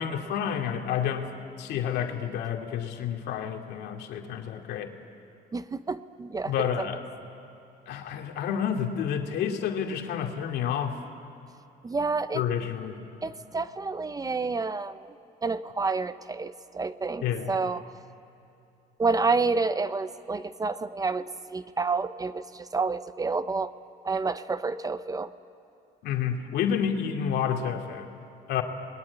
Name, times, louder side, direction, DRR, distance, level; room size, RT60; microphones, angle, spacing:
voice 1, 0.0-1.3 1.6-4.9 6.4-7.0 7.9-11.0 12.3-13.0 17.2-17.5 26.0-28.1 28.5-28.6, left 8 dB, 75° left, 3 dB, 2.5 m, -29 dB
voice 2, 5.5-6.7 11.8-12.4 13.2-15.2 15.4-17.8 19.0-23.7 24.0-25.3, right 4 dB, 20° right, 13 dB, 0.7 m, -29 dB
29.0 x 21.0 x 9.6 m, 2.7 s
cardioid pair, 110°, 17 cm